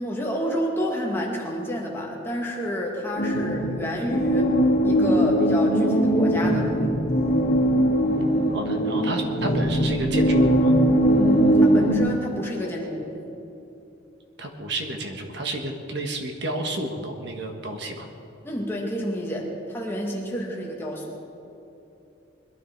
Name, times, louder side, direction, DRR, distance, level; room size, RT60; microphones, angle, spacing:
voice 1, 0.0-4.5 4.8-6.7 11.6-13.2 18.4-21.2, equal, 10° left, -2 dB, 2.0 m, -29 dB
sound 1, 3.2-12.0, equal, 50° left, 2.4 m, -20 dB
voice 2, 8.5-10.7 14.4-18.1, right 1 dB, 55° right, 3 dB, 1.5 m, -31 dB
22.0 x 12.5 x 4.6 m, 2.9 s
head